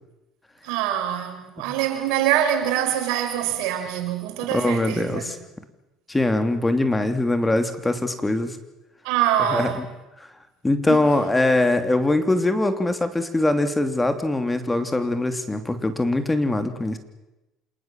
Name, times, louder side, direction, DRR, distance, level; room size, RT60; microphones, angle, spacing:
voice 1, 0.6-5.2 9.0-9.8 10.9-11.0, right 10 dB, 75° right, 4.9 m, -24 dB
voice 2, 4.5-5.4 6.1-8.6 9.5-9.8 10.6-17.0, left 2 dB, 15° left, 3.0 m, -22 dB
27.5 x 19.5 x 7.6 m
hypercardioid pair, 75°, 0 cm